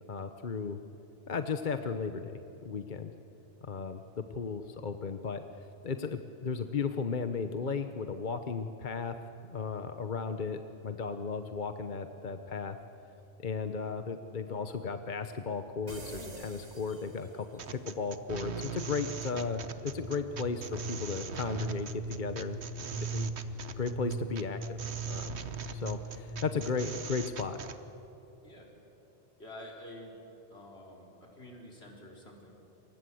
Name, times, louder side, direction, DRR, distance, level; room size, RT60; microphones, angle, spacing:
voice 1, 0.1-0.8 1.3-3.1 3.7-5.4 5.8-9.1 9.4-12.8 13.4-22.6 22.9-23.3 23.8-24.8 25.1-25.3 25.7-27.6, left 5 dB, 50° left, 8 dB, 1.1 m, -35 dB
sound 1, 15.9-17.7, right 2 dB, 40° right, 1.8 m, -47 dB
sound 2, 17.6-27.8, right 7 dB, 90° right, 1.4 m, -42 dB
sound 3, 19.3-27.1, right 3 dB, 60° right, 3.4 m, -40 dB
voice 2, 29.4-30.2 30.5-32.5, left 1 dB, 80° left, -1 dB, 4.8 m, -48 dB
28.0 x 24.0 x 7.8 m, 2.9 s
omnidirectional pair, 1.1 m